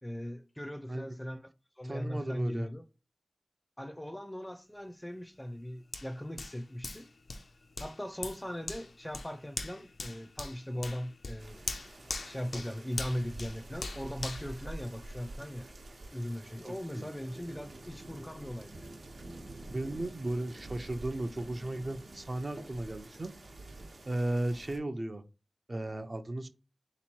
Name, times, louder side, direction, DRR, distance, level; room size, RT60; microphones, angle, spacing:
voice 1, 0.0-1.5 1.8-2.8 3.8-7.1 7.8-11.7 12.2-15.7 16.1-18.9, equal, 10° left, 0.5 m, -39 dB
voice 2, 1.8-2.7 12.5-12.6 16.6-17.1 19.7-23.3 24.1-25.2 25.7-26.5, right 1 dB, 40° right, 0.5 m, -35 dB
Hands, 5.9-15.4 15.9-16.0, left 3 dB, 75° left, 0.5 m, -42 dB
sound 1, 11.4-24.8, right 2 dB, 75° right, 0.9 m, -48 dB
3.5 x 3.0 x 4.4 m
wide cardioid pair, 60°, 0 cm